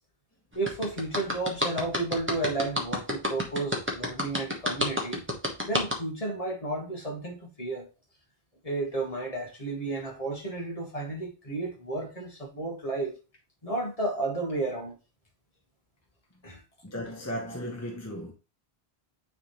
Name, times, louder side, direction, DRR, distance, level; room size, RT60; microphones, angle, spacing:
voice 1, 0.5-5.2 5.6-7.9 8.6-13.2 13.6-15.0 16.4-16.6, right 2 dB, 35° left, 1.6 m, -32 dB
sound 1, 0.7-5.9, left 1 dB, 10° right, 1.1 m, -28 dB
voice 2, 16.8-18.3, equal, 15° left, 1.1 m, -35 dB
9.5 x 3.5 x 3.1 m
omnidirectional pair, 1.1 m